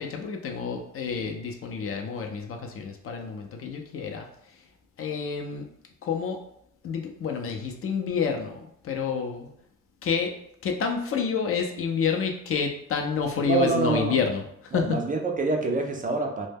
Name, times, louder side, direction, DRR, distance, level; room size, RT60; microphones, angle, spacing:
voice 1, 0.0-4.3 5.0-5.7 6.0-6.4 6.8-9.5 10.0-10.3 10.6-15.0, left 6 dB, 50° left, 3 dB, 0.5 m, -29 dB
voice 2, 13.5-14.2 14.7-16.5, right 4 dB, 30° right, 2 dB, 0.4 m, -26 dB
2.1 x 2.1 x 3.3 m, 0.74 s
cardioid pair, 90°, 30 cm